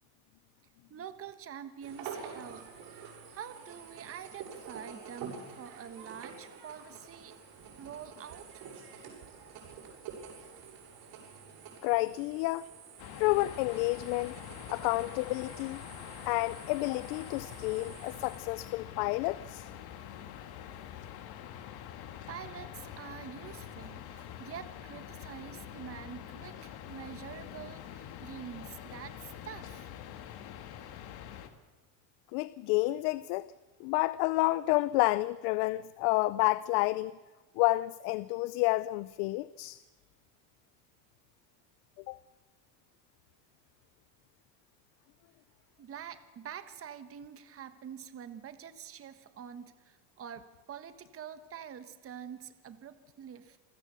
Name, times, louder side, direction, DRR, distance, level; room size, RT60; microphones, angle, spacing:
voice 1, 0.9-7.3 7.8-8.6 22.3-29.9 45.8-53.6, right 8 dB, 30° right, 1.3 m, -46 dB
sound 1, 1.8-18.4, right 6 dB, 60° right, 7.6 m, -48 dB
voice 2, 11.8-12.7 13.2-14.3 14.7-15.8 16.2-19.7 32.3-33.5 33.8-37.2 37.6-39.8 42.1-42.2, left 20 dB, 80° left, 0.7 m, -30 dB
sound 2, 13.0-31.5, left 10 dB, 55° left, 2.0 m, -45 dB
28.0 x 16.0 x 6.9 m
cardioid pair, 140°, 45 cm